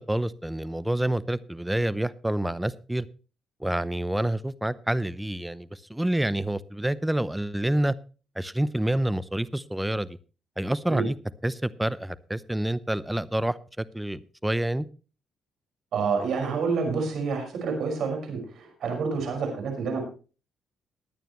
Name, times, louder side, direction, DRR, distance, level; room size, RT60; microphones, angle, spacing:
voice 1, 0.1-3.1 3.6-7.9 8.4-10.2 10.6-11.1 11.4-14.9, right 1 dB, 5° right, 18 dB, 0.7 m, -28 dB
voice 2, 15.9-20.0, right 5 dB, 70° right, 4 dB, 5.2 m, -28 dB
19.5 x 9.2 x 3.1 m, 0.35 s
cardioid pair, 90°, 0 cm